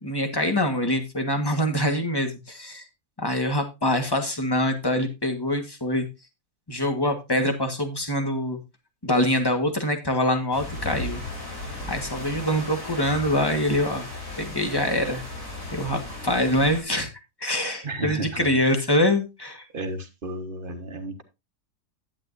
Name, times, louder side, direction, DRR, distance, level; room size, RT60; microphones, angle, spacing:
voice 1, 0.0-2.8 3.2-6.1 6.7-8.6 9.0-11.2 11.9-14.1 14.4-15.2 15.7-17.1 17.4-19.6, left 1 dB, 15° left, 6 dB, 1.4 m, -24 dB
sound 1, 10.5-16.8, left 2 dB, 60° left, 5.1 m, -36 dB
voice 2, 17.8-18.5 19.7-21.2, right 2 dB, 35° right, 6 dB, 1.4 m, -32 dB
11.5 x 8.6 x 2.6 m, 0.25 s
omnidirectional pair, 1.6 m